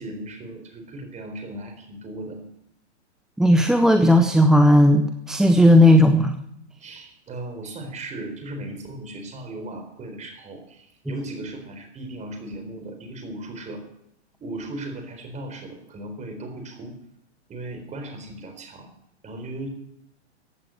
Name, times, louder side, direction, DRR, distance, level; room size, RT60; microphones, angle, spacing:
voice 1, 0.0-2.4 6.8-13.8 14.4-16.9 17.5-18.9 19.2-19.7, right 1 dB, 20° right, 6 dB, 4.1 m, -37 dB
voice 2, 3.4-6.4, left 1 dB, ahead, 8 dB, 0.6 m, -15 dB
15.0 x 8.8 x 7.8 m, 0.75 s
hypercardioid pair, 130°, 35 cm